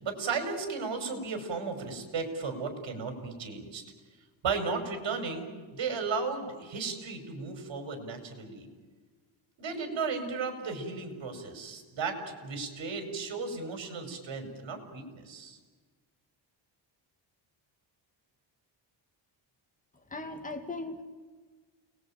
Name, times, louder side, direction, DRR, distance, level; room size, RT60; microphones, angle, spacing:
voice 1, 0.0-3.8 4.4-8.7 9.6-15.6, right 4 dB, 70° right, 6 dB, 5.5 m, -35 dB
voice 2, 20.1-21.0, left 2 dB, 15° left, 5 dB, 2.5 m, -38 dB
30.0 x 20.5 x 8.9 m, 1.4 s
cardioid pair, 125°, 46 cm